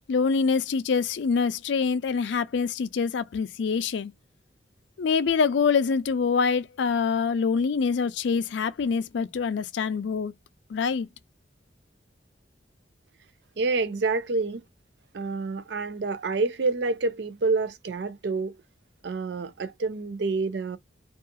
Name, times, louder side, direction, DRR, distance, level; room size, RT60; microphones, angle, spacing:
voice 1, 0.1-4.1 5.0-10.3 10.7-11.1, left 5 dB, 75° left, 0.4 m, -25 dB
voice 2, 13.6-14.6 15.1-18.6 19.0-20.8, right 3 dB, 70° right, 0.5 m, -28 dB
2.6 x 2.4 x 2.5 m
head